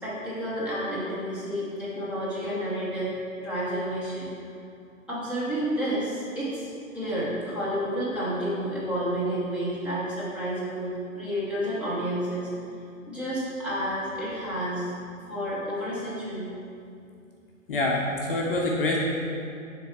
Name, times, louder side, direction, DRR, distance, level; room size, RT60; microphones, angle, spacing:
voice 1, 0.0-4.3 5.1-6.7 6.9-12.5 13.1-14.9 15.3-16.5, equal, 5° right, -11 dB, 1.0 m, -30 dB
voice 2, 17.7-19.0, left 2 dB, 40° left, -2 dB, 0.7 m, -26 dB
6.8 x 3.5 x 4.7 m, 2.5 s
figure-of-eight pair, 125°, 41 cm